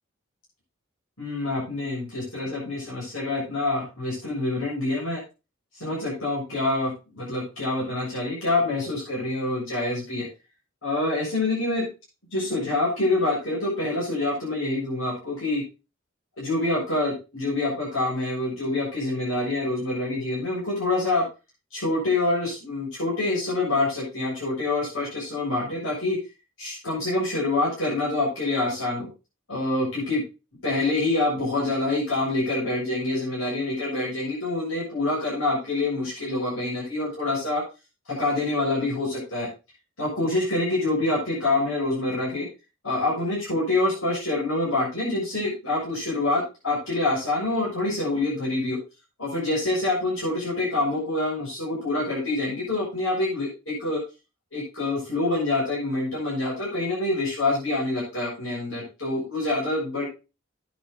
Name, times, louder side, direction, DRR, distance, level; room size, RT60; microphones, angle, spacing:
voice 1, 1.2-5.2 5.8-10.3 10.8-11.9 12.3-15.6 16.4-21.2 21.7-26.2 26.6-29.1 29.5-30.2 30.6-37.6 38.1-39.5 40.0-42.5 42.8-48.8 49.2-54.0 54.5-60.1, left 2 dB, 85° left, -6 dB, 7.2 m, -26 dB
10.5 x 8.9 x 4.1 m, 0.29 s
head